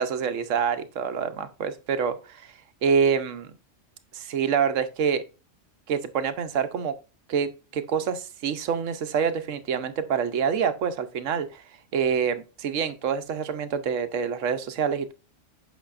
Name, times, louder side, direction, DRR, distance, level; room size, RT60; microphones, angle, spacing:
voice 1, 0.0-2.5 2.8-3.5 4.1-5.2 5.9-6.9 7.3-11.6 11.9-15.1, right 7 dB, 85° right, 1.1 m, -26 dB
8.1 x 5.4 x 2.5 m
omnidirectional pair, 1.3 m